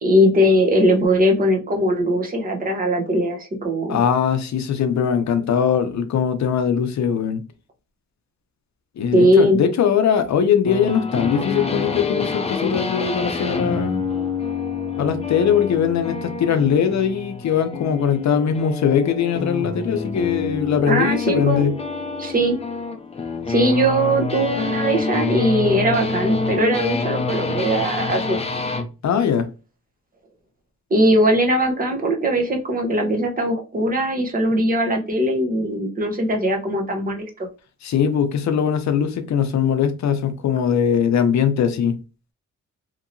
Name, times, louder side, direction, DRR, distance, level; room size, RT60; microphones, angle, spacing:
voice 1, 0.0-4.0 9.1-9.6 20.9-21.7 22.2-22.6 23.5-28.4 30.9-37.5, equal, 30° right, 0.8 m, -20 dB
voice 2, 3.9-7.4 9.0-14.0 15.0-21.7 29.0-29.5 37.8-42.0, left 7 dB, 70° left, 0.6 m, -20 dB
sound 1, 10.6-28.9, left 4 dB, 20° left, 0.5 m, -27 dB
2.9 x 2.8 x 2.6 m
wide cardioid pair, 115°, 29 cm